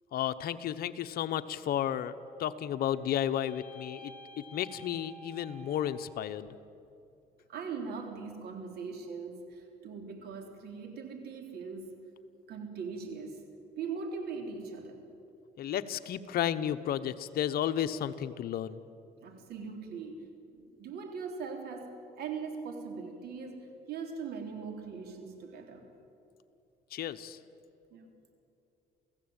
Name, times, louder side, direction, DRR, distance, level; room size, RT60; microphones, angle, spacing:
voice 1, 0.1-4.1 4.5-6.5 15.6-18.8 26.9-27.4, left 10 dB, 65° left, 11 dB, 1.1 m, -33 dB
sound 1, 2.1-6.5, equal, 10° left, 4.0 m, -52 dB
voice 2, 7.5-11.9 12.5-13.5 13.8-15.1 19.2-20.3 20.6-25.9 27.9-28.3, right 5 dB, 70° right, 4 dB, 3.8 m, -40 dB
29.0 x 16.0 x 8.9 m, 2.7 s
cardioid pair, 110°, 17 cm